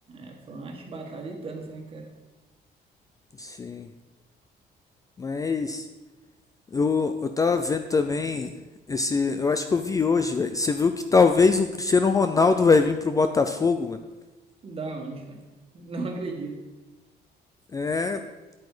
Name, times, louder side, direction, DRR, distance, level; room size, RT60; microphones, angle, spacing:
voice 1, 0.1-2.1 14.6-15.4 15.7-16.6, right 3 dB, 35° right, 2 dB, 1.6 m, -36 dB
voice 2, 3.4-3.9 5.2-5.9 6.7-8.6 8.9-14.0 17.7-18.2, left 4 dB, 20° left, 8 dB, 0.4 m, -23 dB
8.3 x 8.3 x 4.9 m, 1.1 s
cardioid pair, 155°, 17 cm